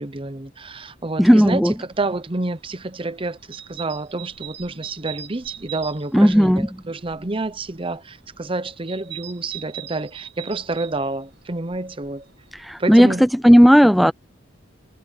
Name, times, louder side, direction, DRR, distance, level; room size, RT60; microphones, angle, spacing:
voice 1, 0.0-12.3 12.8-13.2 14.0-14.1, right 2 dB, 30° right, 0.8 m, -29 dB
voice 2, 1.2-1.7 6.1-6.7 12.5-14.1, equal, ahead, 0.6 m, -14 dB
sound 1, 1.9-12.8, right 12 dB, 65° right, 1.6 m, -41 dB
head